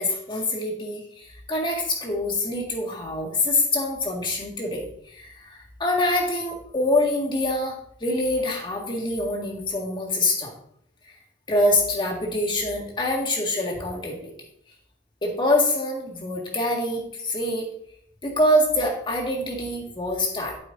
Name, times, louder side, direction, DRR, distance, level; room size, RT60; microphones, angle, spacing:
voice 1, 0.0-10.5 11.5-14.3 15.2-17.7 18.2-20.6, left 1 dB, 25° left, 0 dB, 1.8 m, -25 dB
9.4 x 7.8 x 2.6 m, 0.66 s
head